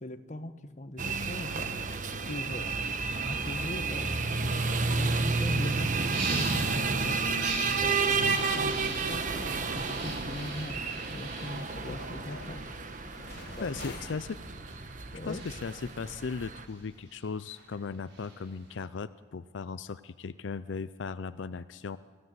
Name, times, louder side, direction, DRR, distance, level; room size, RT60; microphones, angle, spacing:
voice 1, 0.0-1.7 2.3-2.7 3.2-7.2 7.7-10.8 11.1-12.6 13.6-13.7 15.1-15.4, left 1 dB, 40° left, 9 dB, 1.1 m, -40 dB
sound 1, 1.0-16.6, right 4 dB, 45° right, 1.2 m, -31 dB
sound 2, 6.0-6.8 7.3-12.5 13.0-18.8, right 3 dB, 75° right, 5.8 m, -42 dB
sound 3, 6.8-14.2, left 2 dB, 55° left, 2.0 m, -50 dB
voice 2, 13.6-14.4 15.2-22.0, left 5 dB, 85° left, 14 dB, 0.5 m, -37 dB
24.0 x 15.5 x 7.8 m, 1.5 s
head